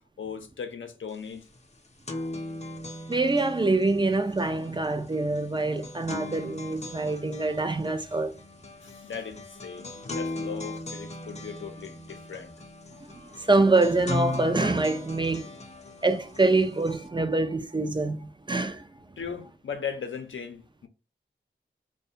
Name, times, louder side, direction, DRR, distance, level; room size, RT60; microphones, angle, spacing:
voice 1, 0.2-1.5 8.8-12.5 19.2-20.9, left 6 dB, 80° left, 0.6 m, -38 dB
sound 1, 1.1-1.2 1.5-17.1, left 2 dB, 35° left, 0.6 m, -39 dB
voice 2, 3.1-8.3 13.1-15.5 16.0-18.9, right 2 dB, 25° right, 0.4 m, -25 dB
2.3 x 2.2 x 2.7 m
cardioid pair, 50°, 20 cm